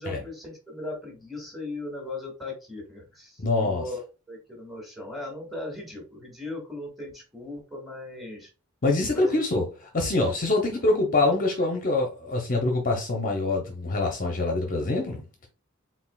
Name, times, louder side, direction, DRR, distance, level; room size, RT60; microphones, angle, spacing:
voice 1, 0.0-4.0 4.3-8.5 9.1-9.4 11.2-11.4, left 2 dB, ahead, 1.9 m, -38 dB
voice 2, 3.4-3.9 8.8-9.6 9.9-15.2, left 2 dB, 40° left, 0.8 m, -25 dB
4.7 x 3.8 x 2.3 m
head